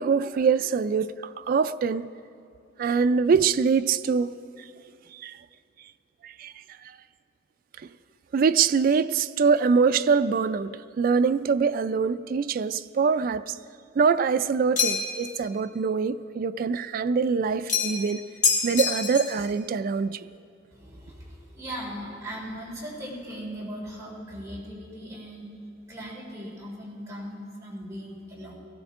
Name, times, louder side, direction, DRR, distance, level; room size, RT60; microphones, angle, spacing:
voice 1, 0.0-2.1 2.8-4.4 5.1-5.4 6.2-6.5 6.8-6.9 8.3-13.6 14.0-18.2 18.6-20.3, right 5 dB, 50° right, 0.3 m, -24 dB
sound 1, 14.8-15.3 17.7-18.1 18.4-19.4, left 5 dB, 40° left, 1.7 m, -25 dB
voice 2, 20.7-25.5 25.9-28.5, equal, 15° right, 3.3 m, -38 dB
17.5 x 15.5 x 3.6 m
head